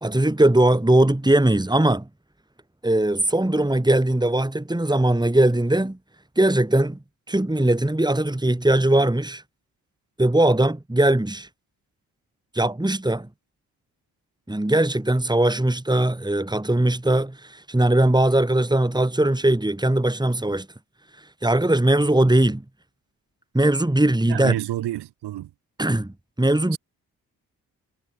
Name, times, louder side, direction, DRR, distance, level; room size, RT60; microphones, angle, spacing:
voice 1, 0.0-2.1 2.8-6.0 6.4-7.0 7.3-9.4 10.2-11.5 12.5-13.3 14.5-20.7 21.4-22.6 23.5-24.6 25.8-26.8, right 1 dB, 10° right, 3.5 m, -20 dB
voice 2, 24.3-25.5 26.7-26.8, right 14 dB, 85° right, 6.5 m, -29 dB
supercardioid pair, 40°, 39 cm